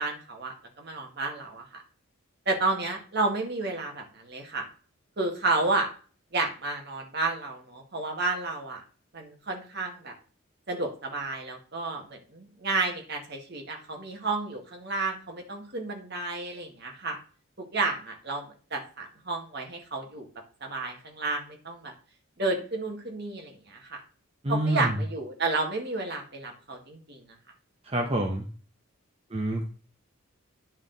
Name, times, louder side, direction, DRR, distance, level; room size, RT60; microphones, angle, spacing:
voice 1, 0.0-1.8 2.5-4.7 5.2-5.9 6.3-8.8 9.1-10.1 10.7-17.2 17.7-18.5 18.7-20.3 20.6-21.9 22.4-24.0 24.5-27.2, right 3 dB, 50° right, 2 dB, 1.9 m, -31 dB
voice 2, 24.4-25.0 27.8-28.5 29.3-29.6, right 1 dB, 30° right, 0 dB, 0.9 m, -27 dB
9.6 x 6.0 x 4.0 m, 0.40 s
head